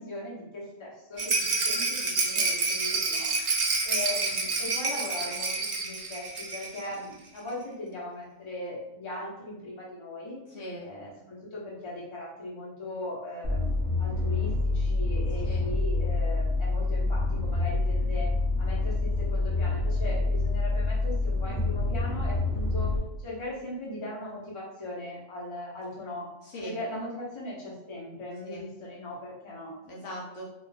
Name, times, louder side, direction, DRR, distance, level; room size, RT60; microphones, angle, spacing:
voice 1, 0.0-3.3 3.8-10.4 10.8-18.3 18.6-26.2 26.6-29.8, left 1 dB, 25° left, -5 dB, 0.8 m, -39 dB
Rattle, 1.2-6.9 7.1-7.2 7.5-7.6, right 3 dB, 55° right, 0.4 m, -28 dB
voice 2, 10.5-10.9 15.4-15.7 20.0-20.2 26.4-26.8 28.4-28.6 29.9-30.4, equal, 65° left, -4 dB, 0.9 m, -40 dB
sound 1, 13.4-23.0, left 2 dB, 25° right, 1.1 m, -27 dB
2.5 x 2.4 x 3.9 m, 0.93 s
omnidirectional pair, 1.4 m